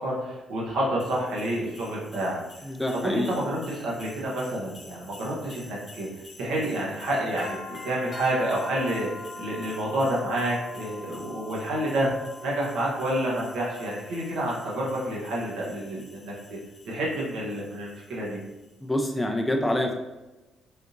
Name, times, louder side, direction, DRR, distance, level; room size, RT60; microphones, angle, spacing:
voice 1, 0.0-2.4 3.0-6.1 6.4-12.1 12.4-16.3 16.9-18.4, right 1 dB, 85° right, -5 dB, 0.9 m, -29 dB
sound 1, 1.0-18.7, left 2 dB, 35° left, 0.7 m, -45 dB
voice 2, 2.6-3.3 18.8-20.0, left 1 dB, 5° left, 1 dB, 0.3 m, -26 dB
3.4 x 2.8 x 2.5 m, 1.0 s
cardioid pair, 90°, 0 cm